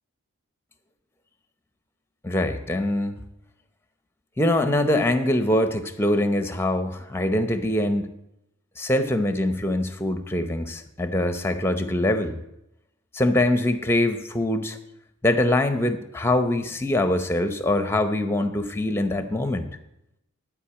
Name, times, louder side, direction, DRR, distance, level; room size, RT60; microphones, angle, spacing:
voice 1, 2.2-3.2 4.4-8.1 8.8-12.4 13.1-14.8 15.2-19.7, left 1 dB, 10° left, 9 dB, 0.7 m, -23 dB
12.0 x 5.2 x 8.6 m, 0.85 s
head